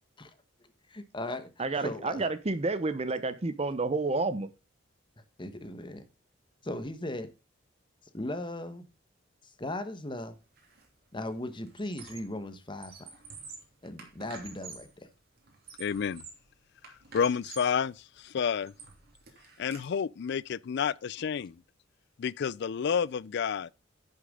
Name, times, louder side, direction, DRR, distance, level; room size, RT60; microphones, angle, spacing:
voice 1, 0.9-1.5 1.8-2.2 5.4-6.0 6.6-7.3 8.1-8.8 9.4-10.4 11.1-13.1 13.8-15.1, left 1 dB, 25° left, 1.1 m, -37 dB
voice 2, 1.6-4.5, right 3 dB, 30° right, 0.7 m, -30 dB
Squeak, 10.6-10.9 11.2-12.4 12.7-15.0 15.5-16.5 16.8-17.8 18.3-19.8, right 5 dB, 50° right, 3.0 m, -49 dB
voice 3, 15.8-16.2 17.1-18.7 19.6-21.6 22.2-23.7, left 7 dB, 60° left, 0.4 m, -30 dB
10.5 x 6.6 x 3.6 m
head